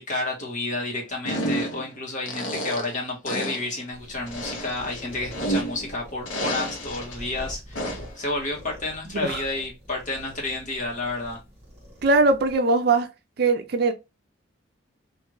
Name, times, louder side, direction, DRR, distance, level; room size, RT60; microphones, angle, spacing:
voice 1, 0.0-11.4, left 2 dB, 40° left, 1.4 m, -31 dB
sound 1, 1.2-1.9 2.3-3.0 3.3-3.7 4.3-5.9 6.3-7.2 7.8-8.2, equal, 70° left, 0.9 m, -30 dB
sound 2, 3.9-12.6, equal, 15° right, 2.0 m, -44 dB
voice 2, 12.0-13.1 13.4-13.9, right 3 dB, 50° right, 0.4 m, -21 dB
3.4 x 2.5 x 3.1 m
head